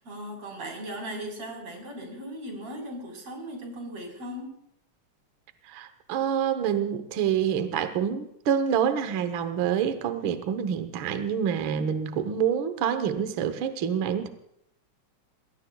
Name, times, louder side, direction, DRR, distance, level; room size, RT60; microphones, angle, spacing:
voice 1, 0.0-4.6, right 1 dB, 55° right, 1 dB, 5.2 m, -38 dB
voice 2, 5.7-14.3, right 8 dB, 70° right, 9 dB, 1.1 m, -27 dB
27.5 x 20.5 x 2.3 m, 0.76 s
omnidirectional pair, 3.5 m